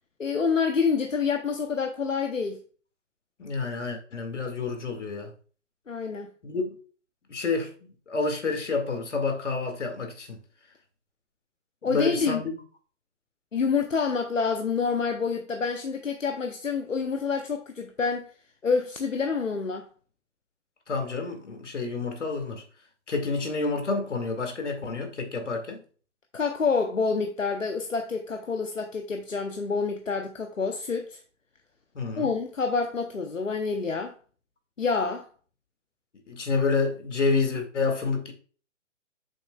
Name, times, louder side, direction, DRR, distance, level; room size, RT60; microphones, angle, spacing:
voice 1, 0.2-2.6 5.9-6.3 11.8-12.4 13.5-18.3 18.6-19.9 26.3-31.2 32.2-34.2 34.8-35.3, left 5 dB, 85° left, 0.9 m, -27 dB
voice 2, 3.4-5.3 6.4-6.7 7.3-7.7 8.1-10.4 11.8-12.6 20.9-22.6 23.1-25.8 31.9-32.3 36.3-38.3, left 4 dB, 65° left, 2.2 m, -29 dB
8.5 x 7.0 x 2.3 m
figure-of-eight pair, 130°, 38 cm